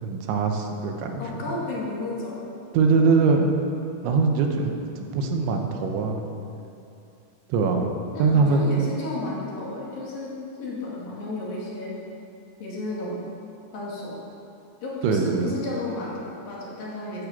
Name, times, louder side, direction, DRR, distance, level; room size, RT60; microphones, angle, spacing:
voice 1, 0.0-1.2 2.7-3.5 4.0-6.2 7.5-7.9 8.2-8.7 15.0-15.6, right 4 dB, 85° right, 3 dB, 3.5 m, -22 dB
voice 2, 1.2-2.4 8.1-12.0 12.6-13.2 13.7-14.2 14.8-17.3, left 2 dB, 55° left, -5 dB, 3.7 m, -33 dB
14.0 x 8.3 x 7.4 m, 2.6 s
omnidirectional pair, 5.2 m